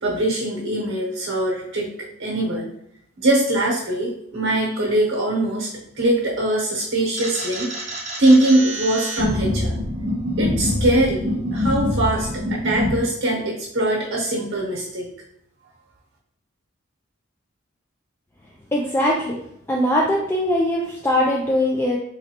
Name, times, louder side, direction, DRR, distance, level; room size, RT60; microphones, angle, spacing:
voice 1, 0.0-1.9 2.2-2.7 3.2-5.7 6.0-7.7 8.2-9.7 10.4-15.1, right 1 dB, 65° right, -3 dB, 0.9 m, -21 dB
sound 1, 7.2-13.0, left 1 dB, 35° right, 0.9 m, -25 dB
voice 2, 18.7-19.4 19.7-22.0, left 1 dB, 10° left, -2 dB, 0.3 m, -21 dB
3.9 x 3.1 x 2.8 m, 0.74 s
head